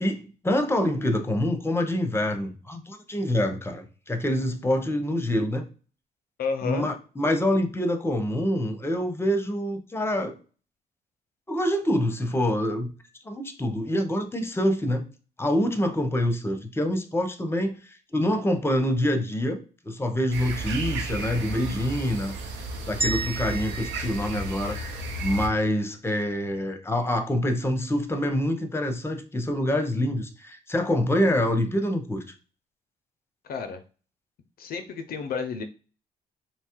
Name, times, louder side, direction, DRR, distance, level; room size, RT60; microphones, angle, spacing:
voice 1, 0.0-5.7 6.6-10.4 11.5-12.9 13.2-15.1 15.4-19.6 19.8-22.3 22.8-24.8 25.2-32.2, left 1 dB, 15° left, 0.6 m, -26 dB
voice 2, 6.4-6.9 33.4-33.8 34.6-35.6, left 5 dB, 60° left, 0.4 m, -31 dB
sound 1, 20.3-25.5, right 2 dB, 90° right, 0.6 m, -33 dB
sound 2, 23.0-25.3, right 2 dB, 30° right, 0.7 m, -34 dB
2.9 x 2.2 x 2.9 m
supercardioid pair, 65°, 17 cm